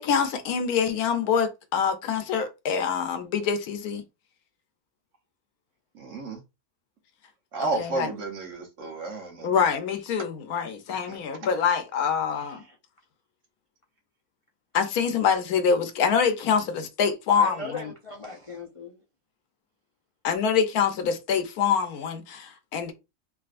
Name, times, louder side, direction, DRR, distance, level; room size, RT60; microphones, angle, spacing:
voice 1, 0.0-4.0 7.6-8.1 9.4-12.6 14.7-17.9 20.2-22.9, left 6 dB, 80° left, 1.2 m, -25 dB
voice 2, 5.9-6.4 7.5-9.5 11.1-11.2, right 3 dB, 60° right, 1.2 m, -32 dB
voice 3, 12.3-12.8 17.3-19.0, left 3 dB, 60° left, 0.3 m, -38 dB
3.5 x 2.6 x 2.4 m
omnidirectional pair, 1.6 m